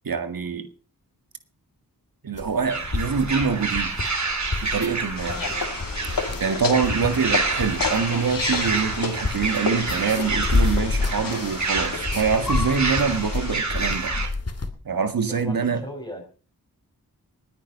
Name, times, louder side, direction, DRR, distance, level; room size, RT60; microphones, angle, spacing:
voice 1, 0.1-0.7 2.2-4.0 4.6-5.4 6.4-14.2 14.9-15.8, right 6 dB, 65° right, 1.9 m, -25 dB
sound 1, 2.3-14.7, left 3 dB, 40° left, 2.4 m, -30 dB
sound 2, 2.7-14.3, right 4 dB, 50° right, 2.9 m, -29 dB
sound 3, 5.2-13.6, left 5 dB, 65° left, 2.3 m, -31 dB
voice 2, 6.3-6.6 15.4-16.2, equal, 10° left, 5.5 m, -39 dB
20.0 x 9.5 x 5.4 m
wide cardioid pair, 100°, 37 cm